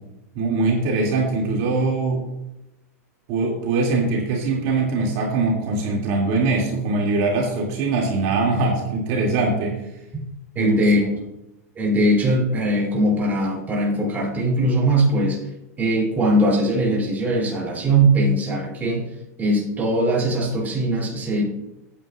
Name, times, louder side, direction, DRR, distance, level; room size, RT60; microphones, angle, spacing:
voice 1, 0.3-2.2 3.3-9.9 10.5-10.8, right 3 dB, 50° right, -2 dB, 2.5 m, -22 dB
voice 2, 10.5-11.0 11.8-15.4 15.8-19.0 19.4-21.4, right 1 dB, 20° right, -3 dB, 3.0 m, -20 dB
14.5 x 9.2 x 2.4 m, 0.92 s
hypercardioid pair, 120°, 8 cm